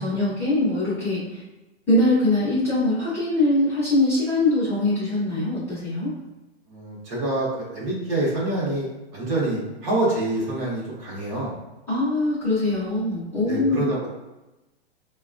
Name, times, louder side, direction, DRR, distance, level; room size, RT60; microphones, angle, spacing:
voice 1, 0.0-1.4 1.9-6.1 11.9-13.8, left 2 dB, 5° left, -12 dB, 0.7 m, -22 dB
voice 2, 6.7-11.5 13.4-14.1, right 1 dB, 30° right, -5 dB, 0.9 m, -26 dB
3.9 x 2.2 x 2.5 m, 1.0 s
hypercardioid pair, 170°, 32 cm